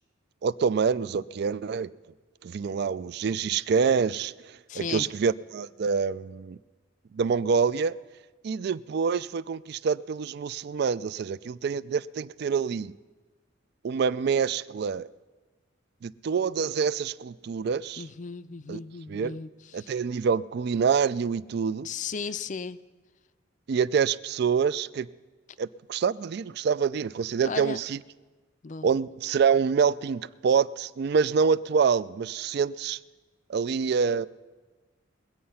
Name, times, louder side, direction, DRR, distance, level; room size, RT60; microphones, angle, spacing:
voice 1, 0.4-1.9 2.4-6.6 7.1-8.0 8.4-12.9 13.8-15.1 16.0-18.0 18.7-18.8 19.1-19.4 19.7-21.9 23.7-25.1 25.6-28.0 28.8-33.0 33.5-34.3, right 6 dB, 55° right, 0.3 m, -26 dB
voice 2, 4.7-5.1 18.0-20.0 21.8-22.8 27.4-27.8 28.6-28.9, left 5 dB, 40° left, 0.4 m, -36 dB
21.5 x 8.6 x 5.6 m
head